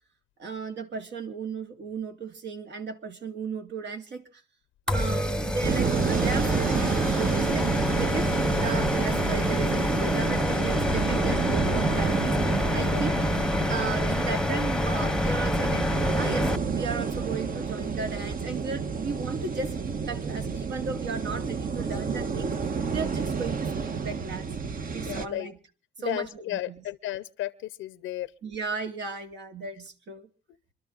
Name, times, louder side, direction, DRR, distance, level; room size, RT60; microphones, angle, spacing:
voice 1, 0.4-4.4 4.9-7.7 8.0-13.2 13.7-22.5 22.9-24.5 24.9-25.6 26.0-26.8 28.4-30.3, right 4 dB, 65° right, 2.8 m, -35 dB
sound 1, 4.9-16.6, left 1 dB, 5° left, 1.1 m, -27 dB
sound 2, 5.6-25.3, right 5 dB, 45° right, 1.5 m, -30 dB
voice 2, 25.1-25.5 26.0-28.3, left 14 dB, 90° left, 0.7 m, -33 dB
26.0 x 12.5 x 4.0 m
cardioid pair, 90°, 20 cm